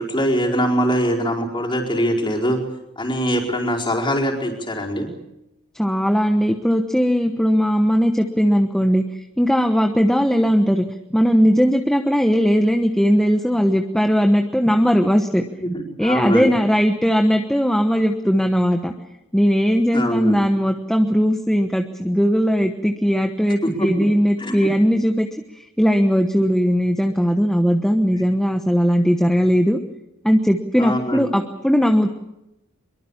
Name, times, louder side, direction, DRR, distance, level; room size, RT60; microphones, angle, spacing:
voice 1, 0.0-2.6 3.0-5.1 15.6-16.5 19.9-20.4 23.6-24.1 24.4-24.7 30.8-31.3, equal, 20° left, -1 dB, 4.9 m, -22 dB
voice 2, 5.7-10.8 11.1-15.4 16.0-18.9 19.3-25.3 25.5-29.8 30.2-32.1, equal, ahead, 5 dB, 1.1 m, -18 dB
23.5 x 23.0 x 7.3 m, 0.90 s
head